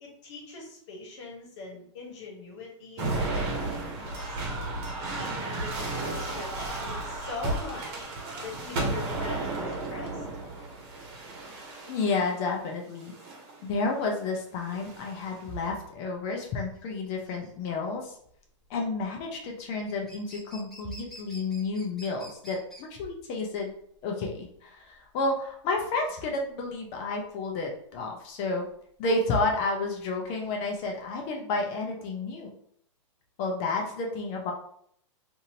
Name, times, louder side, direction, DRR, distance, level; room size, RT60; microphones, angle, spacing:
voice 1, 0.0-4.5 5.1-8.1 8.4-10.3, left 3 dB, 65° left, -1 dB, 1.3 m, -42 dB
sound 1, 3.0-12.3 13.0-13.6 14.7-15.3, right 2 dB, 55° right, 1.0 m, -33 dB
voice 2, 11.9-13.1 13.6-18.2 18.7-23.7 24.0-28.7 29.0-32.5 33.4-34.5, left 3 dB, 40° left, 1 dB, 0.7 m, -31 dB
sound 2, 16.0-31.0, equal, ahead, 1.1 m, -52 dB
2.7 x 2.7 x 2.8 m, 0.65 s
hypercardioid pair, 130°, 16 cm